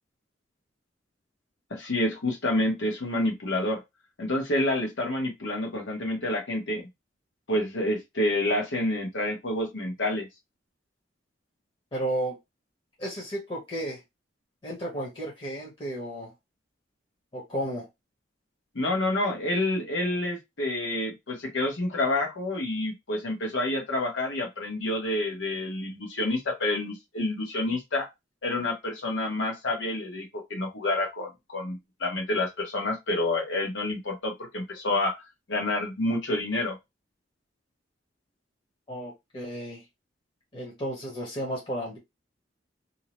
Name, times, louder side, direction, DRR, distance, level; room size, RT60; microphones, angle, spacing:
voice 1, 1.7-3.8 4.2-6.9 7.5-10.3 18.7-28.1 28.4-35.2 35.5-36.8, left 1 dB, 70° left, 0.9 m, -28 dB
voice 2, 11.9-12.4 13.0-14.0 14.6-16.3 17.3-17.9 38.9-39.8 40.5-42.0, right 1 dB, 30° left, 0.9 m, -33 dB
2.7 x 2.0 x 2.9 m
head